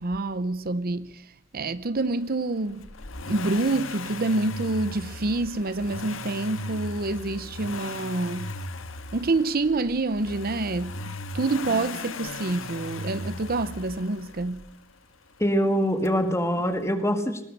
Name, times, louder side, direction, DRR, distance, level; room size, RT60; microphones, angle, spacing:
voice 1, 0.0-2.9 3.2-8.5 9.1-14.7, right 2 dB, 50° right, 0.8 m, -27 dB
Accelerating revving vroom, 2.8-14.7 16.0-16.1, left 2 dB, 90° left, 1.7 m, -37 dB
voice 2, 15.4-17.4, equal, 15° left, 2.0 m, -24 dB
20.5 x 19.0 x 6.6 m
head